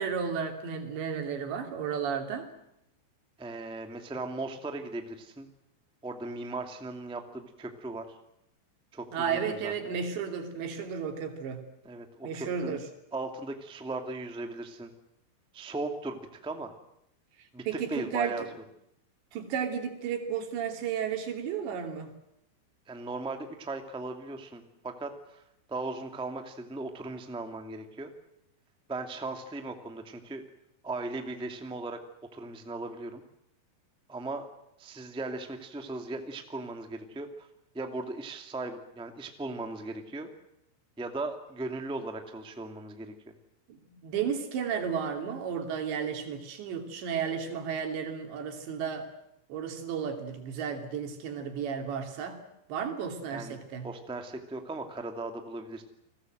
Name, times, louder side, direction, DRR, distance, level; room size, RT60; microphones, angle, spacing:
voice 1, 0.0-2.5 9.1-11.6 12.2-12.8 17.7-18.4 19.3-22.1 43.7-49.1 49.5-52.4 52.7-53.9, right 7 dB, 85° right, 5 dB, 5.2 m, -33 dB
voice 2, 3.4-5.5 6.0-8.2 8.9-9.9 11.8-12.8 13.1-14.9 15.5-16.7 17.5-18.4 22.9-25.4 25.7-28.1 28.9-30.4 30.8-32.0 32.3-33.2 34.1-34.5 34.8-37.5 37.7-40.3 41.0-43.1 53.3-53.6 53.8-55.8, right 2 dB, 5° right, 5 dB, 1.0 m, -38 dB
30.0 x 20.5 x 7.9 m, 0.81 s
omnidirectional pair, 4.9 m